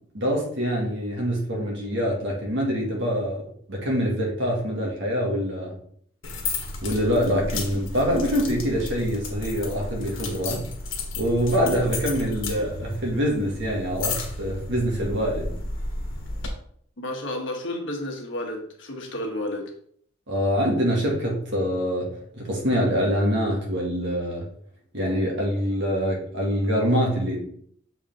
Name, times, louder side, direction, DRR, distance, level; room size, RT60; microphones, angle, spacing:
voice 1, 0.1-3.4 3.7-5.7 6.8-10.6 11.2-15.6 20.3-24.5 24.9-27.4, equal, 65° right, -2 dB, 2.4 m, -25 dB
sound 1, 6.2-16.5, left 2 dB, 80° left, 1.5 m, -33 dB
voice 2, 17.0-19.7, left 1 dB, 65° left, 2 dB, 1.5 m, -31 dB
6.9 x 4.8 x 3.9 m, 0.62 s
head